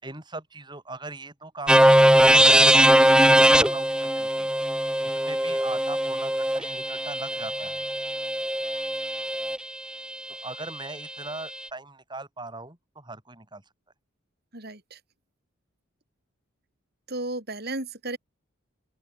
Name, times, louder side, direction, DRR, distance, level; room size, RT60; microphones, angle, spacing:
voice 1, 0.0-3.3 3.5-4.5 5.0-7.8 10.3-13.6, right 2 dB, 20° right, 5.4 m, -40 dB
sound 1, 1.7-9.6, right 1 dB, 5° right, 1.5 m, -20 dB
voice 2, 14.5-15.0 17.1-18.2, right 2 dB, 50° right, 6.3 m, -34 dB
open air
head